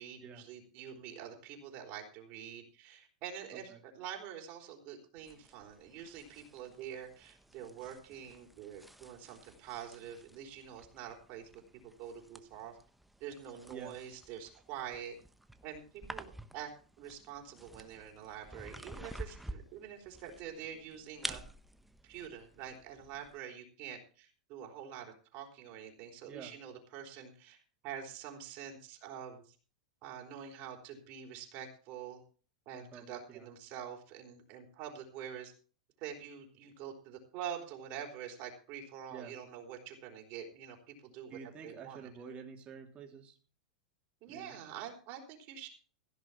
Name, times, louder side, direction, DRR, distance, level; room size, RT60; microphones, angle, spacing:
voice 1, 0.0-11.5 11.8-12.8 13.2-15.2 15.6-15.8 16.1-16.7 17.0-21.4 22.0-27.6 27.8-29.6 30.0-32.2 32.7-35.5 36.0-41.4 41.6-42.1 44.2-45.7, right 9 dB, 50° right, 2 dB, 4.2 m, -46 dB
sound 1, 5.2-23.4, right 1 dB, 5° right, 1.0 m, -50 dB
voice 2, 26.3-26.6 32.7-33.5 39.1-39.3 41.3-43.4 44.3-44.6, right 6 dB, 30° right, 2 dB, 3.3 m, -49 dB
16.0 x 6.2 x 7.2 m, 0.38 s
hypercardioid pair, 110°, 4 cm